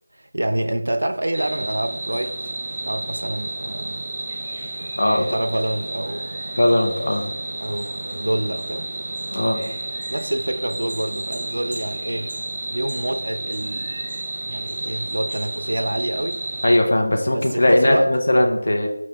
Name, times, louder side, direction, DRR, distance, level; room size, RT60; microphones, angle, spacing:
voice 1, 0.1-2.4 2.8-4.1 5.2-6.4 7.6-8.9 10.1-12.3 12.7-14.0 14.5-16.4 17.3-18.1, right 1 dB, 80° right, 0.3 m, -27 dB
sound 1, 1.3-16.8, right 2 dB, 35° right, 0.6 m, -31 dB
voice 2, 5.0-5.4 6.6-7.3 9.3-9.6 16.6-18.9, left 1 dB, 65° left, 0.6 m, -18 dB
4.0 x 2.1 x 4.0 m
figure-of-eight pair, 170°, 0 cm